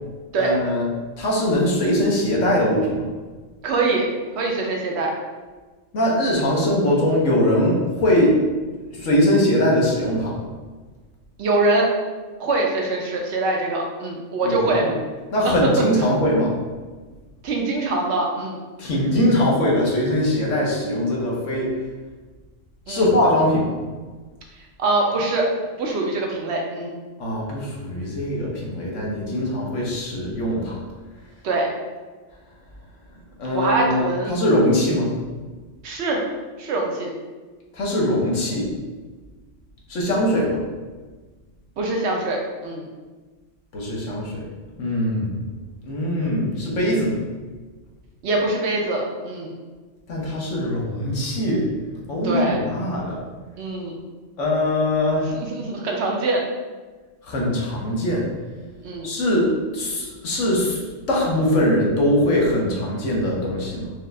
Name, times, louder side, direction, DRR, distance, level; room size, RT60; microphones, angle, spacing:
voice 1, 0.4-0.9 1.2-3.0 5.9-8.4 9.0-10.4 14.4-14.9 15.3-16.5 18.8-21.7 22.9-23.7 27.2-30.8 33.4-35.1 37.7-38.7 39.9-40.6 43.7-44.4 44.8-45.5 45.8-47.2 50.1-51.6 52.1-53.2 54.4-55.3 57.2-58.3 59.0-60.8 61.1-63.9, left 1 dB, 70° left, -3 dB, 1.3 m, -21 dB
voice 2, 3.6-4.1 4.3-5.1 11.4-11.9 12.4-14.8 15.4-15.5 17.4-18.6 22.9-23.2 24.8-25.5 25.8-26.9 31.4-31.7 33.5-34.3 35.8-36.2 36.6-37.1 41.8-42.8 48.2-49.5 52.1-52.6 53.6-53.9 55.3-56.4 58.8-59.1, right 2 dB, 60° right, 0 dB, 1.0 m, -23 dB
4.7 x 2.5 x 3.3 m, 1.3 s
omnidirectional pair, 1.3 m